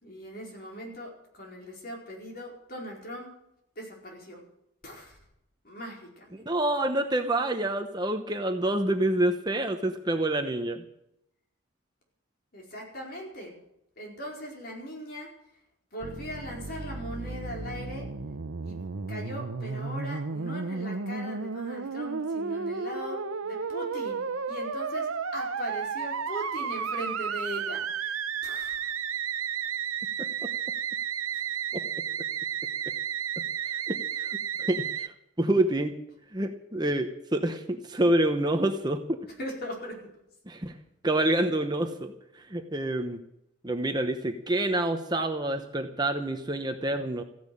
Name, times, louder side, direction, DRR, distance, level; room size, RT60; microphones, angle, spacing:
voice 1, 0.0-3.4 3.7-4.4 4.8-5.2 5.6-6.4 12.5-13.6 14.0-15.3 15.9-18.1 18.6-28.9 31.3-31.4 39.4-40.1, equal, 45° left, -1 dB, 4.7 m, -40 dB
voice 2, 6.3-10.8 30.2-30.3 31.7-31.8 33.6-35.9 36.3-39.2 40.5-40.8 41.0-43.2 43.6-47.2, right 1 dB, 20° right, 6 dB, 0.9 m, -27 dB
Musical instrument, 16.0-35.1, right 6 dB, 85° right, 0.8 m, -33 dB
15.0 x 10.5 x 8.6 m, 0.79 s
head